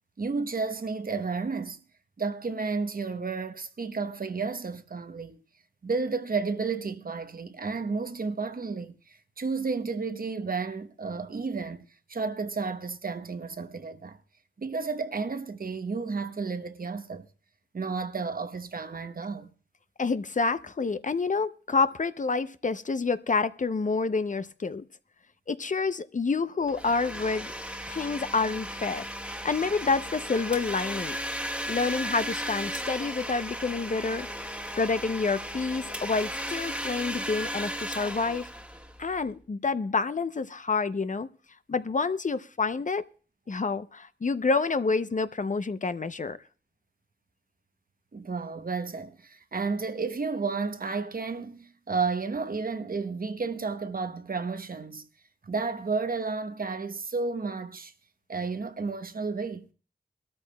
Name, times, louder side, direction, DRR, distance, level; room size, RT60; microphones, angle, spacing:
voice 1, 0.2-1.8 2.2-5.4 5.8-14.2 14.6-17.3 17.7-19.5 48.1-55.1 55.4-57.9 58.3-59.7, right 4 dB, 50° right, 0.8 m, -32 dB
voice 2, 20.0-24.8 25.5-27.5 27.9-29.0 29.4-31.2 31.7-34.3 34.8-38.5 39.0-41.3 41.7-43.0 43.5-46.4, left 4 dB, 45° left, 0.5 m, -28 dB
Domestic sounds home sounds, 26.7-39.3, equal, 5° right, 1.4 m, -35 dB
23.0 x 13.0 x 2.2 m
cardioid pair, 45°, 18 cm